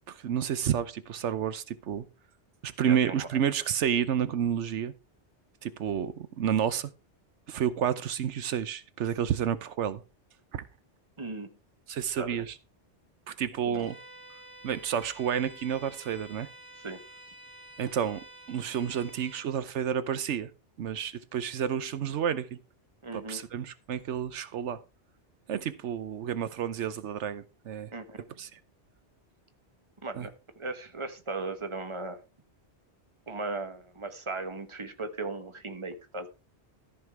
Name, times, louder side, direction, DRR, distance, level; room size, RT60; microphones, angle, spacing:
voice 1, 0.1-2.0 2.6-4.9 5.6-6.9 7.5-10.0 10.5-10.7 11.9-12.6 13.3-14.0 14.6-16.5 17.8-18.2 18.5-20.5 20.8-22.6 23.1-24.8 25.5-27.9 28.4-28.6 30.1-30.3, right 9 dB, 85° right, 1.1 m, -30 dB
voice 2, 2.9-3.3 11.2-11.5 12.2-12.4 13.6-13.9 16.8-17.0 23.0-23.4 27.9-28.2 30.0-32.2 33.3-36.3, right 3 dB, 25° right, 1.3 m, -37 dB
Bowed string instrument, 13.7-19.5, right 1 dB, 55° right, 3.4 m, -50 dB
14.0 x 5.8 x 4.5 m
omnidirectional pair, 1.2 m